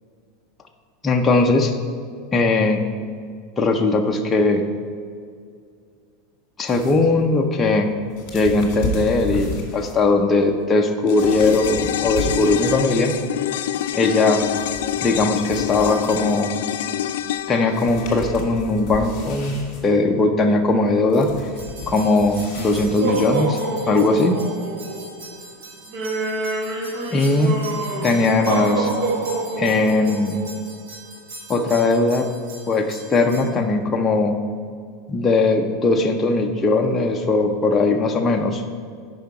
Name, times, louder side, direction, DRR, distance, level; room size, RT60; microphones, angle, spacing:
voice 1, 1.0-1.7 2.3-2.8 3.6-4.6 6.6-7.9 8.3-13.2 13.9-14.4 15.0-16.5 17.5-19.6 19.8-21.3 21.9-23.6 23.9-24.4 27.1-27.6 28.0-28.9 29.6-30.5 31.5-32.3 32.7-34.4 35.1-38.6, left 3 dB, 15° left, 2 dB, 0.5 m, -19 dB
sound 1, 6.7-13.1 13.4-16.7 17.4-17.5 17.7-23.4, left 1 dB, 35° left, 1.7 m, -34 dB
sound 2, 11.1-19.6 19.9-20.0, left 11 dB, 90° left, 0.3 m, -27 dB
sound 3, 21.6-33.5, right 3 dB, 55° right, 1.3 m, -29 dB
9.0 x 5.5 x 4.7 m, 2.2 s
supercardioid pair, 175°, 0 cm